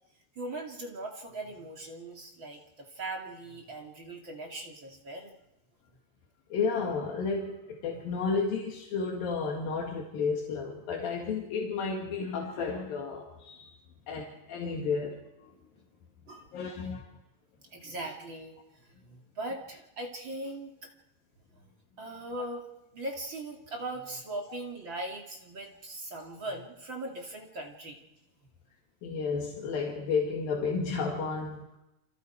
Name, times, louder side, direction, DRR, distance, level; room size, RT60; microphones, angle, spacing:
voice 1, 0.3-5.4 16.3-16.5 16.8-17.0 17.7-20.9 22.0-22.7 22.9-28.0, right 2 dB, 35° right, 0 dB, 2.8 m, -40 dB
voice 2, 6.5-13.7 14.1-15.5 16.5-17.1 29.0-31.8, left 5 dB, 75° left, -1 dB, 3.8 m, -32 dB
29.0 x 25.0 x 4.7 m, 0.93 s
omnidirectional pair, 4.1 m